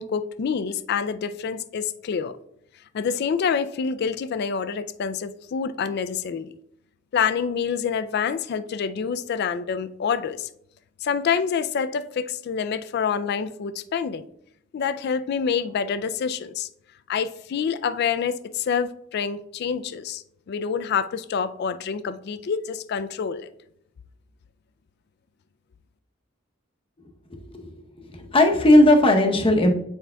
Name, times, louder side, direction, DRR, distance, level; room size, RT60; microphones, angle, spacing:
voice 1, 0.0-2.4 2.9-6.5 7.1-10.5 11.0-14.2 14.7-16.7 17.1-23.5, left 6 dB, 55° left, 0.3 m, -27 dB
voice 2, 27.3-27.7 28.1-29.7, left 1 dB, 25° left, 0.8 m, -17 dB
9.0 x 4.7 x 2.2 m
head